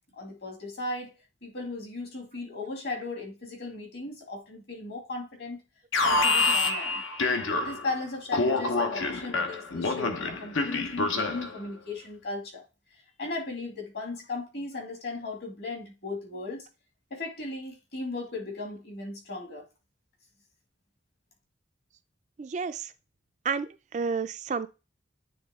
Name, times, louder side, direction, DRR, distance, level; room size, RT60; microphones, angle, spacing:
voice 1, 0.1-1.1 1.4-5.6 6.0-7.0 7.6-12.6 13.2-16.7 17.1-19.6, left 2 dB, 55° left, 2.1 m, -37 dB
Alarm, 5.9-7.9 8.3-11.6, left 3 dB, 80° left, 1.0 m, -27 dB
voice 2, 22.4-22.9 23.4-24.7, right 5 dB, 35° right, 0.3 m, -31 dB
9.4 x 3.4 x 3.5 m
head